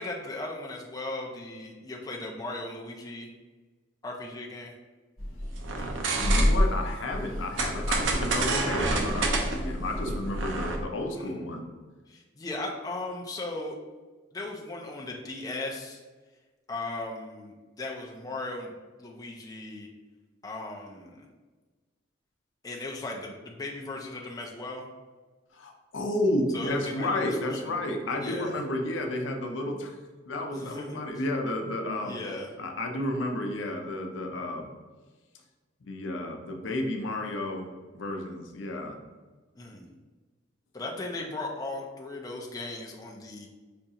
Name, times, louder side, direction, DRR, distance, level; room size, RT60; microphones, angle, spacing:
voice 1, 0.0-3.3 4.0-4.7 11.1-11.5 12.1-13.8 14.3-16.0 16.7-18.7 19.0-19.9 20.4-21.3 22.6-24.9 26.5-27.2 27.6-27.8 28.2-28.6 30.5-31.1 32.0-32.5 39.6-39.9 40.7-43.5, left 2 dB, 20° left, -1 dB, 0.4 m, -37 dB
sound 1, 5.2-10.8, equal, 45° left, 0.9 m, -37 dB
sound 2, 5.6-6.9 7.6-10.8, right 1 dB, 80° right, 0.5 m, -26 dB
voice 2, 6.2-11.7 25.5-30.0 30.3-32.2 32.6-34.7 35.8-37.7 37.9-39.0, left 1 dB, 80° left, 3 dB, 0.5 m, -31 dB
5.0 x 2.3 x 2.7 m, 1.3 s
head